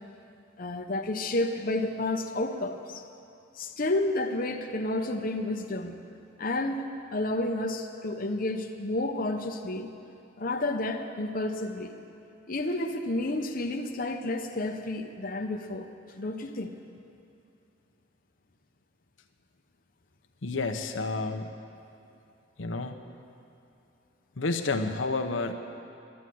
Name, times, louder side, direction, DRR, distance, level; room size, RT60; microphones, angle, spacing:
voice 1, 0.6-3.0 3.5-6.0 6.4-6.9 7.1-9.9 10.4-11.9 12.5-15.9 16.2-16.7, left 2 dB, 45° left, 3 dB, 0.8 m, -30 dB
voice 2, 20.4-21.5 22.6-23.0 24.4-25.5, left 3 dB, 85° left, 5 dB, 0.9 m, -30 dB
13.0 x 10.0 x 9.3 m, 2.7 s
head